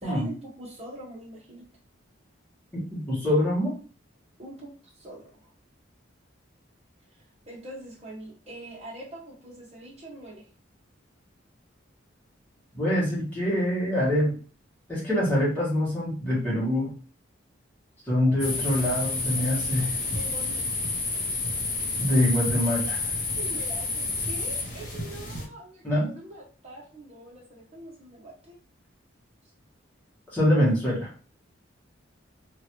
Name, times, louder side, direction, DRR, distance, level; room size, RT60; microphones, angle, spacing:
voice 1, 0.0-1.6 4.4-5.5 7.5-10.4 20.1-20.9 23.4-28.6, right 1 dB, 35° right, -3 dB, 1.1 m, -43 dB
voice 2, 2.9-3.7 12.7-14.3 14.9-16.9 18.1-20.0 22.0-23.0 25.8-26.1 30.3-31.1, left 1 dB, 10° left, -8 dB, 1.5 m, -24 dB
sound 1, 18.4-25.5, left 3 dB, 45° left, 0.8 m, -30 dB
2.9 x 2.5 x 2.9 m, 0.39 s
head